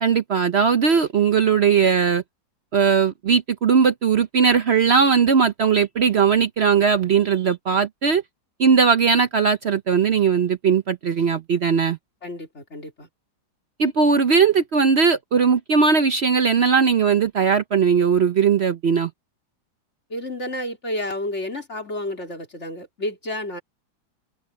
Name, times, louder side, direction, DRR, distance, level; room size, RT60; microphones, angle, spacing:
voice 1, 0.0-2.2 2.7-8.2 8.6-12.0 13.8-19.1, right 6 dB, 75° right, 0.6 m, -19 dB
voice 2, 12.2-13.1 20.1-23.6, left 1 dB, 35° left, 3.6 m, -30 dB
omnidirectional pair, 2.2 m